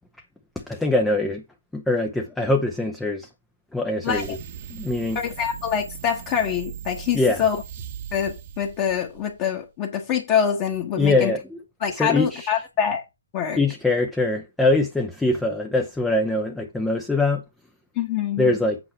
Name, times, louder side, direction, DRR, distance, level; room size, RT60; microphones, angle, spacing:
voice 1, 0.6-1.4 1.7-3.3 3.7-4.4 4.7-5.2 7.1-7.4 11.0-11.6 12.0-12.5 13.6-17.4 18.4-18.8, left 2 dB, 5° left, 0.6 m, -23 dB
voice 2, 4.0-4.4 5.1-7.6 8.1-11.3 11.8-13.0 13.3-13.6 17.9-18.5, left 8 dB, 25° left, 1.2 m, -25 dB
sound 1, 4.0-9.4, right 9 dB, 30° right, 1.0 m, -39 dB
8.1 x 4.5 x 5.6 m
figure-of-eight pair, 150°, 0 cm